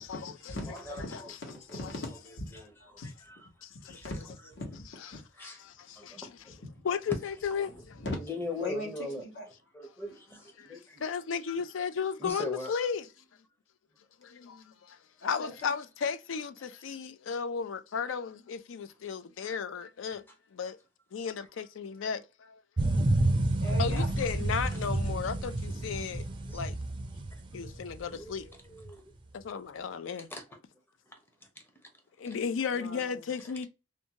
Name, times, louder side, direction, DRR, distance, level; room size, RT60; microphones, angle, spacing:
voice 1, 0.7-1.9 2.5-2.7 3.3-3.4 3.9-4.1 5.4-5.6 6.0-6.3 7.1-7.2 7.6-7.8 8.2-9.3 9.7-11.0 12.2-12.7 19.4-19.5 25.7-25.8 26.5-26.6 28.1-29.0 30.1-30.4 32.3-32.4, left 1 dB, 10° left, 0.6 m, -41 dB
voice 2, 1.4-2.0 2.3-3.1 4.0-4.8 8.0-8.2 8.6-8.9 9.2-9.5 15.2-15.7 23.6-24.1 32.7-33.2, left 1 dB, 65° left, 1.2 m, -39 dB
voice 3, 3.6-4.0 5.4-6.3 6.8-8.0 10.6-10.7 11.0-13.1 14.2-15.0 15.2-20.2 20.5-20.8 21.1-22.6 23.8-26.3 26.5-26.8 27.5-28.4 29.3-30.3 32.2-33.7, left 6 dB, 85° left, 0.4 m, -34 dB
sound 1, 22.8-28.4 28.8-28.9, right 1 dB, 25° right, 0.4 m, -29 dB
2.6 x 2.2 x 2.8 m
head